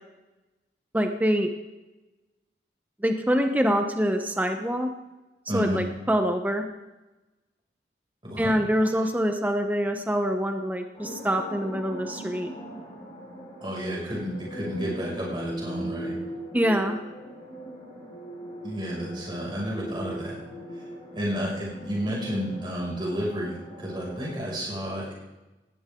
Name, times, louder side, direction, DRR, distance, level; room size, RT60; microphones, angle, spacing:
voice 1, 0.9-1.5 3.0-4.9 5.5-6.6 8.4-12.5 16.5-17.0, equal, 10° right, 5 dB, 1.0 m, -25 dB
voice 2, 5.5-5.8 8.2-8.5 8.8-8.9 13.6-16.1 18.6-20.4 20.7-20.8 21.1-25.1, equal, 25° right, -5 dB, 6.5 m, -31 dB
sound 1, 10.9-24.4, right 1 dB, 30° left, 5.8 m, -40 dB
19.0 x 16.0 x 3.8 m, 1.1 s
head